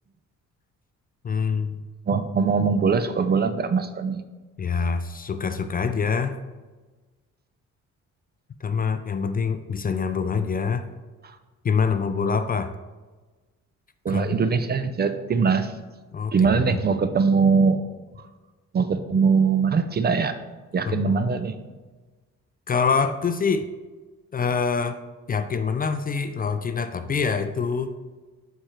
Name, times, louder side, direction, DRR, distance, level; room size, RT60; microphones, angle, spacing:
voice 1, 1.2-1.8 4.6-6.4 8.6-10.9 11.6-12.7 14.1-14.3 16.1-16.8 20.9-21.2 22.7-23.7 24.3-25.0 25.3-27.9, left 5 dB, 30° left, 10 dB, 0.4 m, -25 dB
voice 2, 2.1-4.2 11.2-11.4 14.0-15.7 16.3-17.9 18.7-20.4 20.7-21.6, right 5 dB, 35° right, 11 dB, 0.5 m, -22 dB
6.7 x 4.4 x 4.5 m, 1.3 s
cardioid pair, 90°, 30 cm